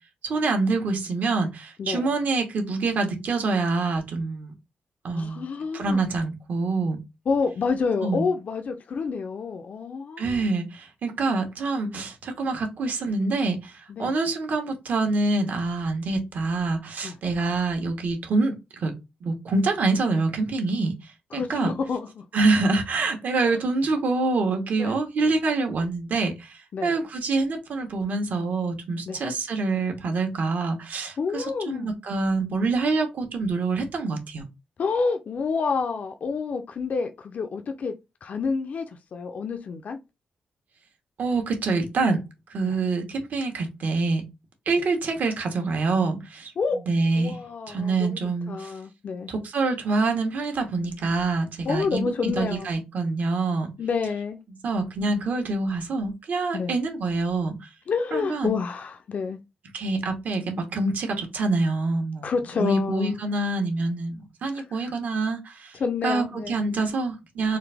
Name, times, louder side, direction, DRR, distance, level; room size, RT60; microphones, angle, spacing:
voice 1, 0.2-4.5 5.0-5.5 5.7-7.0 8.0-8.3 10.2-18.9 19.2-21.7 22.3-34.4 41.2-42.2 42.5-44.2 44.7-46.5 46.9-47.4 47.7-48.7 49.3-53.7 54.6-57.7 58.1-58.5 59.7-62.3 62.6-65.7 66.0-67.6, right 3 dB, 65° right, 1.2 m, -26 dB
voice 2, 1.8-2.1 5.1-6.0 7.3-10.4 13.9-14.1 17.0-17.1 21.3-22.2 23.4-23.6 24.7-25.0 26.7-27.0 29.1-29.2 31.2-31.9 34.8-37.9 38.2-38.9 39.1-40.0 42.6-42.7 46.6-46.8 47.2-48.2 48.5-49.3 51.6-52.7 53.8-54.4 56.5-56.8 57.9-59.4 62.2-63.2 64.5-64.9 65.7-66.6, left 5 dB, 55° left, 0.5 m, -28 dB
4.0 x 2.5 x 3.4 m
cardioid pair, 110°, 3 cm